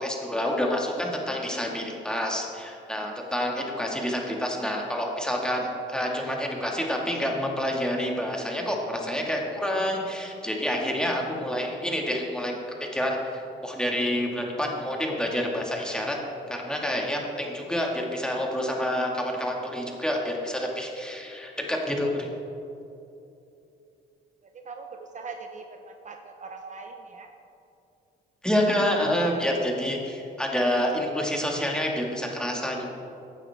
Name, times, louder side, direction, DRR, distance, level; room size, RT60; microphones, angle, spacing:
voice 1, 0.0-12.5 12.8-16.2 16.5-22.3 28.4-32.9, equal, 5° left, -1 dB, 1.9 m, -28 dB
voice 2, 24.5-27.3, right 4 dB, 40° right, 4 dB, 0.8 m, -41 dB
15.5 x 9.1 x 3.6 m, 2.8 s
cardioid pair, 90°, 20 cm